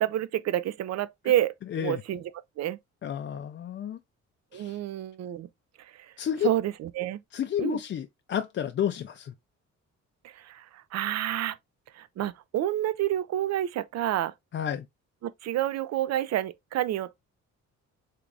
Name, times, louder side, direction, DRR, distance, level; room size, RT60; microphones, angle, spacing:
voice 1, 0.0-2.2 2.6-2.8 4.5-5.5 6.4-7.2 7.6-7.8 10.4-10.6 10.9-11.6 12.0-14.3 15.2-17.2, right 12 dB, 60° right, 0.5 m, -29 dB
voice 2, 1.7-2.0 3.0-4.0 4.5-4.8 6.2-6.5 7.3-9.3 14.5-14.8, left 9 dB, 40° left, 0.4 m, -31 dB
3.7 x 2.4 x 3.3 m
cardioid pair, 90°, 30 cm